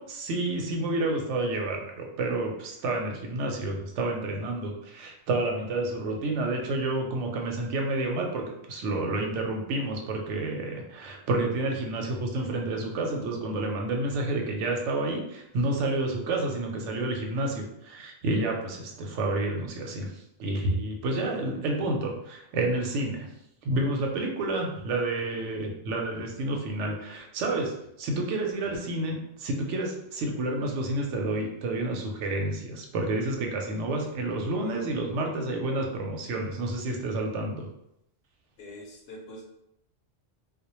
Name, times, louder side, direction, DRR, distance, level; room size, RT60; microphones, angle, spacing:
voice 1, 0.0-20.1 20.4-23.3 23.6-37.7, right 2 dB, 90° right, 1 dB, 0.9 m, -29 dB
voice 2, 34.6-34.9 38.6-39.4, left 1 dB, 65° left, -1 dB, 0.8 m, -44 dB
2.2 x 2.1 x 2.9 m, 0.80 s
omnidirectional pair, 1.2 m